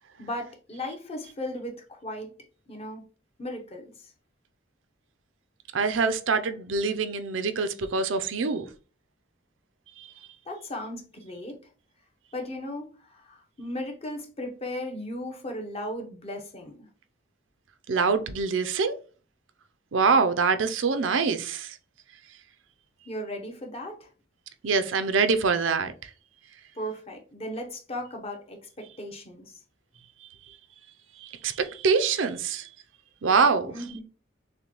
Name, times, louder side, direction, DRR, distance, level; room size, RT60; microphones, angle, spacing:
voice 1, 0.2-2.3 2.7-3.0 3.4-4.1 10.5-11.6 12.3-16.9 23.0-24.1 26.7-29.6 33.7-34.0, left 1 dB, 35° left, 0.9 m, -36 dB
voice 2, 5.7-8.7 10.0-10.1 17.9-19.0 19.9-21.8 24.6-25.9 31.2-32.7 33.2-33.7, right 5 dB, 85° right, 0.5 m, -24 dB
6.4 x 2.2 x 3.0 m
head